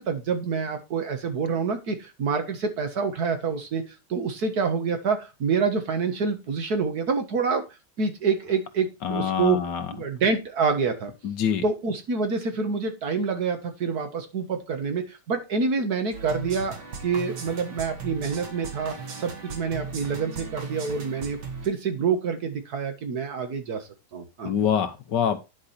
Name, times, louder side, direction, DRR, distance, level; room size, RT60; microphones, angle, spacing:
voice 1, 0.0-7.6 8.0-9.6 9.9-11.1 11.6-16.8 17.0-21.4 21.6-24.5, right 5 dB, 65° right, 6 dB, 1.9 m, -27 dB
voice 2, 9.0-9.9 11.2-11.6 24.4-25.4, left 8 dB, 85° left, 8 dB, 1.7 m, -25 dB
sound 1, 16.1-21.7, right 4 dB, 80° right, 2.3 m, -37 dB
10.0 x 5.0 x 4.3 m, 0.26 s
omnidirectional pair, 1.8 m